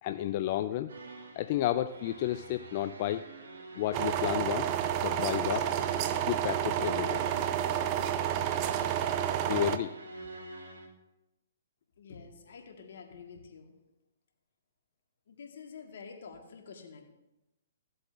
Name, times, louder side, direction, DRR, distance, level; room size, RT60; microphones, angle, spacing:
voice 1, 0.0-0.9 1.4-3.2 3.7-5.7 6.3-7.2 9.4-9.9, left 12 dB, 45° left, 9 dB, 0.3 m, -32 dB
sound 1, 0.9-10.9, right 2 dB, 80° right, 1.5 m, -48 dB
sound 2, 3.9-9.8, right 10 dB, 35° right, 0.5 m, -30 dB
voice 2, 12.0-13.7 15.3-17.0, left 5 dB, 70° left, 3 dB, 1.5 m, -48 dB
15.0 x 7.7 x 2.5 m, 0.96 s
hypercardioid pair, 140°, 0 cm